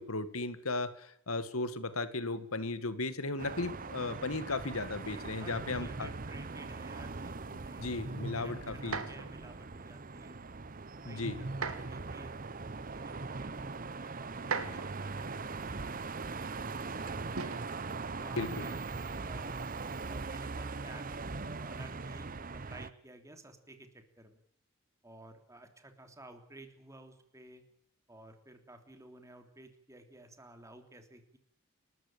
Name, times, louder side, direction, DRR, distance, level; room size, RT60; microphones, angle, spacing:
voice 1, 0.0-6.1 7.8-9.0 11.1-11.4 18.4-18.7, left 3 dB, 85° left, 12 dB, 2.1 m, -36 dB
sound 1, 3.4-22.9, right 3 dB, 40° right, 0.9 m, -41 dB
voice 2, 5.1-10.4 11.1-12.4 12.8-17.6 18.2-18.9 19.3-21.0 21.4-24.4 25.0-27.6 28.1-31.4, right 1 dB, 15° right, 6 dB, 3.3 m, -54 dB
sound 2, 8.8-9.4 11.5-12.0 13.0-13.1 14.4-15.1 17.4-17.7 18.9-19.3, right 5 dB, 90° right, 2.6 m, -38 dB
30.0 x 14.0 x 8.9 m, 0.73 s
head